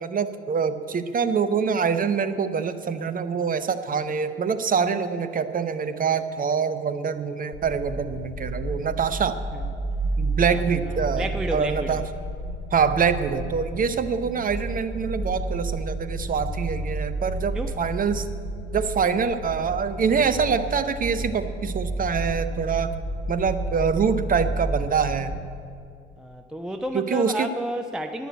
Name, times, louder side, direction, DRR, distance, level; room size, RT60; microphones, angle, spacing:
voice 1, 0.0-9.4 10.2-12.0 12.7-18.3 18.7-22.9 23.3-25.3 26.9-27.5, right 6 dB, 25° right, 12 dB, 0.8 m, -25 dB
sound 1, 7.5-25.3, right 2 dB, 25° left, 2.8 m, -31 dB
voice 2, 10.4-12.0 17.5-17.8 26.2-28.3, equal, ahead, 7 dB, 0.5 m, -31 dB
11.0 x 10.0 x 8.4 m, 2.4 s
figure-of-eight pair, 65°, 34 cm